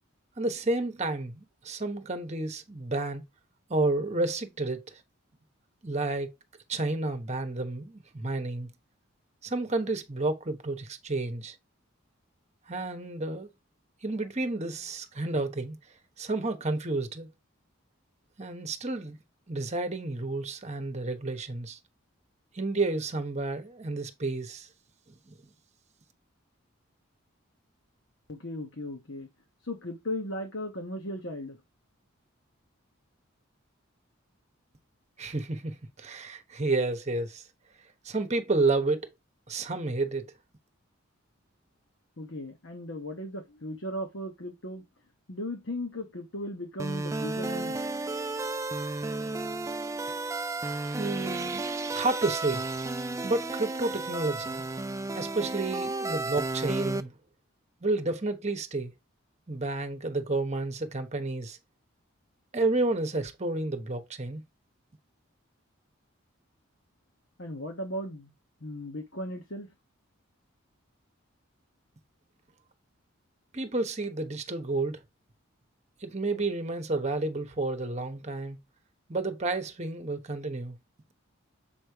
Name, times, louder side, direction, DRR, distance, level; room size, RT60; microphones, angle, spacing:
voice 1, 0.4-3.2 3.7-5.0 5.8-6.3 6.7-8.7 9.4-11.5 12.7-13.5 14.0-15.8 16.2-17.3 18.4-19.2 19.5-21.8 22.5-24.7 25.3-25.4 35.2-37.4 38.0-39.1 39.5-40.2 51.0-52.6 53.2-54.7 55.1-57.1 57.8-58.9 59.5-61.6 62.5-64.4 73.5-75.0 76.0-78.6 79.1-80.8, right 2 dB, 35° right, 1.1 m, -30 dB
voice 2, 28.3-29.3 29.6-31.6 42.2-44.8 45.3-47.8 67.4-68.3 68.6-69.7, left 1 dB, 65° left, 1.2 m, -37 dB
sound 1, 46.8-57.0, right 2 dB, 15° right, 0.3 m, -33 dB
7.3 x 3.3 x 4.6 m
head